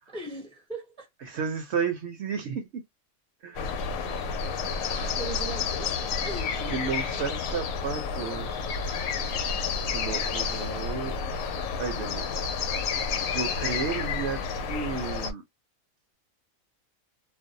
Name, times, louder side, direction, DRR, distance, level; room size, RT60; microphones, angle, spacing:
voice 1, 0.1-1.1 5.2-6.9, right 2 dB, 5° left, 0.5 m, -39 dB
voice 2, 1.3-2.8 3.4-3.8 4.9-5.2 6.7-8.6 9.9-11.2 11.8-12.3 13.3-14.4 14.7-15.4, right 6 dB, 65° right, 0.8 m, -32 dB
sound 1, 3.5-15.3, left 5 dB, 80° left, 1.0 m, -30 dB
2.6 x 2.0 x 2.6 m
omnidirectional pair, 1.4 m